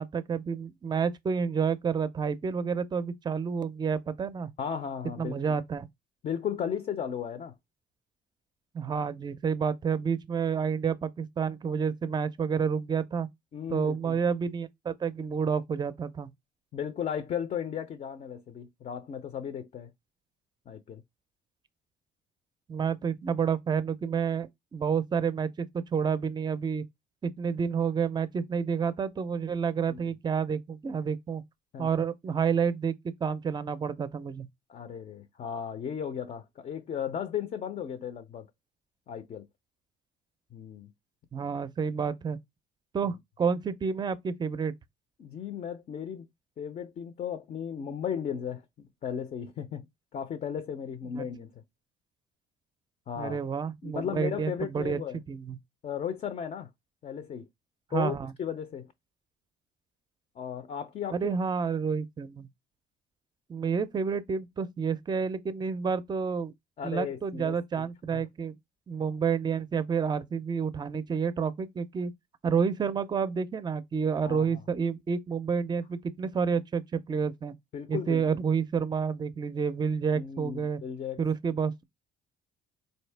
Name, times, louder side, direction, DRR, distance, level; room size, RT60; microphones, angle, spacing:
voice 1, 0.0-4.5 5.2-5.9 8.7-13.3 13.7-16.3 22.7-26.8 27.2-31.4 31.8-32.9 33.2-34.5 41.3-42.4 42.9-44.7 51.1-51.3 53.2-55.0 55.3-55.6 57.9-58.3 61.1-62.5 63.5-66.5 66.8-68.5 68.9-72.1 72.4-77.5 77.9-80.8 81.2-81.8, right 6 dB, 25° right, 0.5 m, -29 dB
voice 2, 4.6-5.6 6.2-7.6 13.5-14.2 16.7-19.9 20.7-21.0 29.9-30.0 31.7-31.9 34.7-38.5 39.1-39.5 40.5-40.9 45.2-46.3 46.6-49.9 50.1-51.6 53.1-53.4 53.8-55.2 55.8-56.7 57.0-57.5 57.9-58.9 60.4-61.4 66.8-68.2 74.2-74.6 77.7-78.4 80.1-81.2, left 8 dB, 45° left, 0.5 m, -35 dB
4.0 x 2.7 x 3.3 m
cardioid pair, 110°, 17 cm